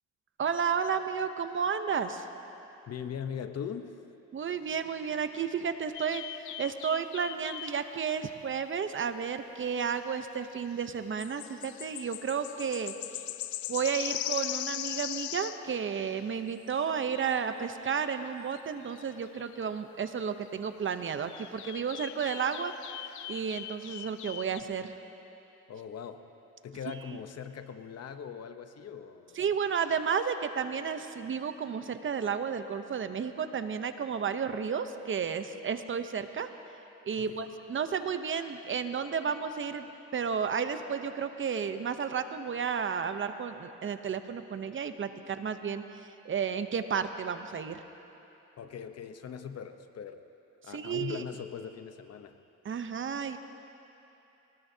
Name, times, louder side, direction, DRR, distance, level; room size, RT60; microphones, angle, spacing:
voice 1, 0.4-2.3 4.3-12.9 13.7-22.7 23.3-24.9 29.4-36.5 37.0-39.9 40.1-45.8 46.2-47.8 50.7-51.2 52.6-53.4, right 6 dB, 40° right, 9 dB, 0.8 m, -32 dB
voice 2, 2.9-4.0 25.7-26.2 26.6-29.4 37.2-37.5 48.6-50.2 50.6-52.4, left 7 dB, 55° left, 9 dB, 0.9 m, -40 dB
sound 1, 5.9-7.8 10.1-10.2 10.5-10.6 10.8-16.3 16.9-17.5 17.8-18.2 18.5-18.6 18.9-19.8 20.0-20.1 21.3-24.6, left 13 dB, 75° left, 0.5 m, -40 dB
23.0 x 19.5 x 2.8 m, 2.9 s
cardioid pair, 90°, 30 cm